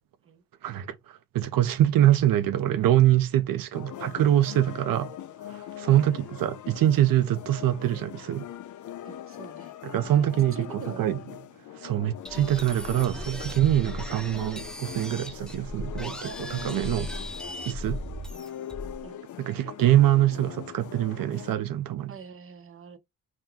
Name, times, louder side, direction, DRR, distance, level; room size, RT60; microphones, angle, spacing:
voice 1, 0.6-5.1 5.5-8.5 9.8-11.2 11.7-16.1 16.4-17.1 17.7-18.0 19.4-22.1, right 12 dB, 80° right, 0.6 m, -24 dB
sound 1, 3.7-21.6, left 11 dB, 60° left, 0.5 m, -42 dB
voice 2, 9.0-9.8 10.5-11.2 16.1-16.4 17.1-17.3 19.0-19.2 22.1-23.0, right 6 dB, 40° right, 0.7 m, -44 dB
sound 2, 12.2-19.0, left 1 dB, ahead, 0.4 m, -37 dB
4.5 x 2.2 x 3.7 m
cardioid pair, 115°, 34 cm